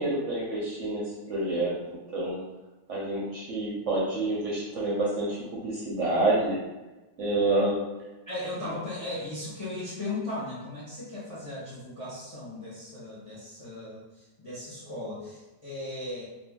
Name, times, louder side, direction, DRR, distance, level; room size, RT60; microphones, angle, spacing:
voice 1, 0.0-2.4 2.9-6.6 7.2-7.8, right 2 dB, 65° right, -5 dB, 0.8 m, -28 dB
voice 2, 8.3-16.2, left 2 dB, 35° left, -8 dB, 0.5 m, -37 dB
2.6 x 2.5 x 3.6 m, 1.1 s
omnidirectional pair, 1.8 m